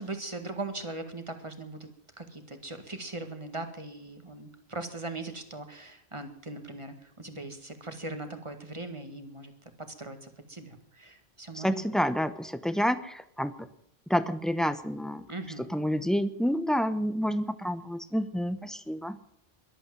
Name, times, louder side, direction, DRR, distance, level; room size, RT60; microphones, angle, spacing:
voice 1, 0.0-1.9 2.2-9.5 9.8-11.9 15.3-15.7, right 2 dB, 30° right, 7 dB, 1.9 m, -40 dB
voice 2, 11.5-13.7 14.1-15.2 15.6-19.2, equal, ahead, 12 dB, 0.9 m, -29 dB
22.0 x 8.6 x 7.5 m, 0.70 s
omnidirectional pair, 1.0 m